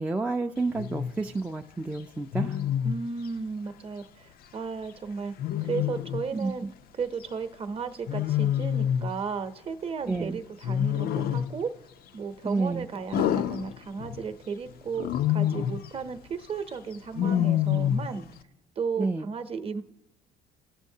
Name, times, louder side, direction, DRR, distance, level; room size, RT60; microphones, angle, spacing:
voice 1, 0.0-2.6 6.3-6.7 10.1-10.4 12.4-12.9 19.0-19.3, right 3 dB, 10° right, 2 dB, 0.4 m, -30 dB
Wild animals, 0.7-1.1 2.3-3.0 5.4-6.3 8.1-9.2 10.6-11.6 13.1-14.2 15.0-15.9 17.2-18.2, left 10 dB, 65° left, 0.5 m, -27 dB
voice 2, 2.8-5.3 5.6-6.6 6.9-11.7 12.1-18.3 18.8-19.8, right 5 dB, 35° right, 8 dB, 0.8 m, -34 dB
17.5 x 6.3 x 2.7 m, 0.91 s
cardioid pair, 110°, 17 cm